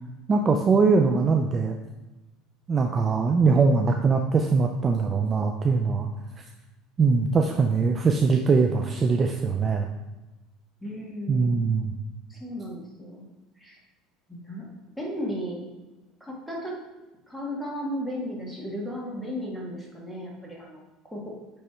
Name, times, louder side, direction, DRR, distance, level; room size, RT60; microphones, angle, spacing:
voice 1, 0.3-1.8 2.7-6.1 7.0-9.9 11.3-11.9, right 4 dB, 30° right, 3 dB, 0.5 m, -22 dB
voice 2, 10.8-11.6 12.3-13.3 13.6-13.8 14.3-14.7 15.0-15.7 16.2-16.8 17.3-20.8 21.1-21.3, equal, ahead, -3 dB, 1.9 m, -35 dB
8.5 x 3.4 x 4.4 m, 1.1 s
supercardioid pair, 110°, 0 cm